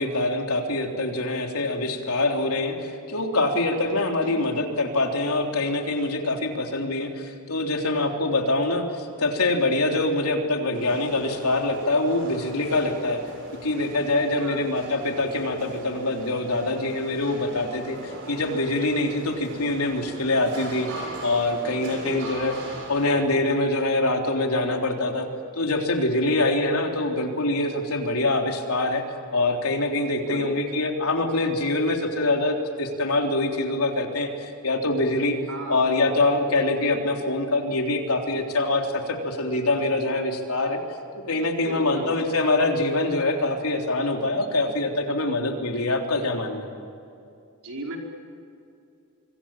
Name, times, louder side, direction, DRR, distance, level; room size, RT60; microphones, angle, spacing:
voice 1, 0.0-8.8 9.2-13.2 13.6-22.5 22.9-25.3 25.6-29.0 29.3-35.4 35.7-40.8 41.3-46.6, left 2 dB, 80° left, 3 dB, 3.5 m, -24 dB
sound 1, 10.7-23.1, right 2 dB, 60° right, 6.6 m, -40 dB
voice 2, 21.8-22.3 30.1-30.5 35.5-35.8 41.6-42.2 47.6-48.0, right 1 dB, 80° right, 0 dB, 5.1 m, -35 dB
25.5 x 25.0 x 9.1 m, 2.5 s
head